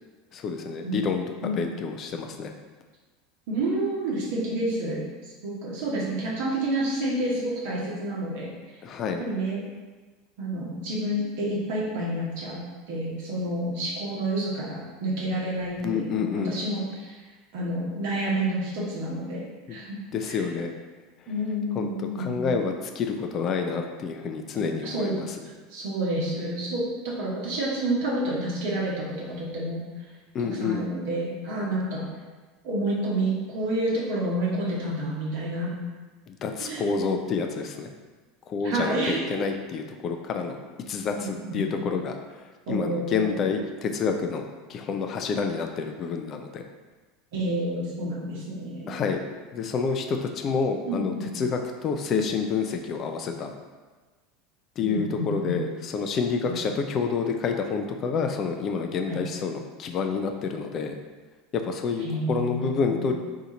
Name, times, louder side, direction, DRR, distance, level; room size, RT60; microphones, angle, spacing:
voice 1, 0.3-2.5 8.8-9.3 15.8-16.5 20.1-20.7 21.7-25.3 30.3-30.8 36.3-37.9 38.5-40.6 40.9-42.2 42.7-44.4 44.7-46.6 48.9-49.2 49.5-53.5 54.8-61.0 61.5-63.2, left 5 dB, 40° left, 4 dB, 0.3 m, -28 dB
voice 2, 3.5-5.0 5.4-8.5 9.2-9.6 10.4-12.6 12.9-17.2 17.5-20.0 20.3-20.4 21.3-22.4 24.5-25.1 25.4-29.8 30.5-32.1 32.6-35.7 36.7-36.9 38.6-39.4 41.1-41.7 42.7-43.4 47.3-49.0 50.9-51.3 54.8-55.8 56.4-56.6 59.1-59.2 62.0-63.2, right 1 dB, 60° right, -4 dB, 1.0 m, -29 dB
2.7 x 2.4 x 3.9 m, 1.3 s
figure-of-eight pair, 80°, 0 cm